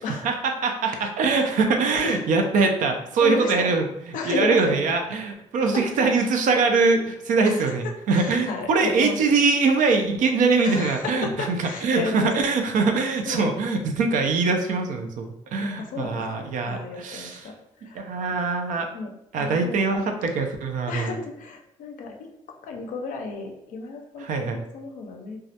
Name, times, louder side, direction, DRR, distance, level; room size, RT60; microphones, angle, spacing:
voice 1, 0.2-17.4 17.9-18.9 19.3-21.1 24.2-24.6, right 4 dB, 75° right, 4 dB, 0.4 m, -23 dB
voice 2, 3.2-3.8 4.1-4.8 5.6-5.9 7.4-9.2 10.6-12.3 13.2-13.6 15.6-18.4 18.9-19.8 20.9-25.4, left 4 dB, 75° left, 3 dB, 0.4 m, -33 dB
2.2 x 2.0 x 2.7 m, 0.81 s
cardioid pair, 85°, 14 cm